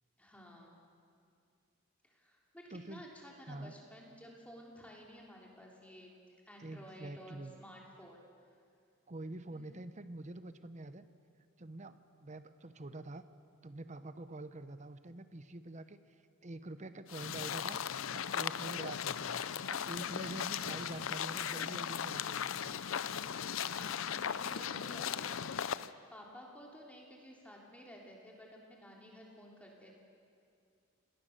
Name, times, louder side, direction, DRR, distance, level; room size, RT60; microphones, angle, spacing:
voice 1, 0.2-0.8 2.0-6.1 6.5-8.2 9.5-9.8 23.5-30.0, equal, 5° left, -2 dB, 3.4 m, -53 dB
voice 2, 2.7-3.0 3.5-3.7 6.6-7.6 9.1-11.0 11.6-13.2 13.6-16.0 16.4-17.8 18.1-22.8, right 2 dB, 35° right, 12 dB, 0.8 m, -46 dB
sound 1, 17.1-25.9, left 8 dB, 70° left, 0.6 m, -37 dB
27.5 x 19.0 x 6.7 m, 2.3 s
head